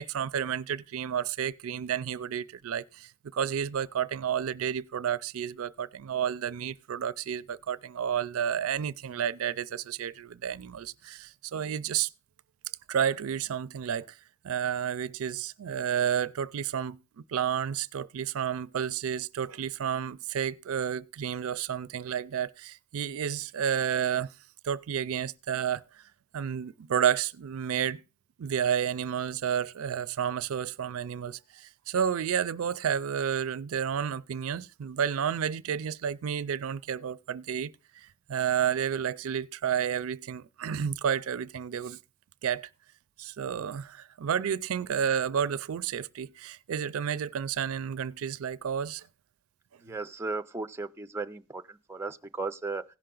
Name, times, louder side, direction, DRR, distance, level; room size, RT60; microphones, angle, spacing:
voice 1, 0.0-12.1 12.9-14.1 14.4-24.3 24.6-25.8 26.3-28.0 28.4-42.0 42.4-42.7 43.2-49.1, right 8 dB, 75° right, 0.4 m, -31 dB
voice 2, 49.8-52.8, right 3 dB, 10° right, 0.4 m, -36 dB
16.5 x 5.6 x 3.8 m
head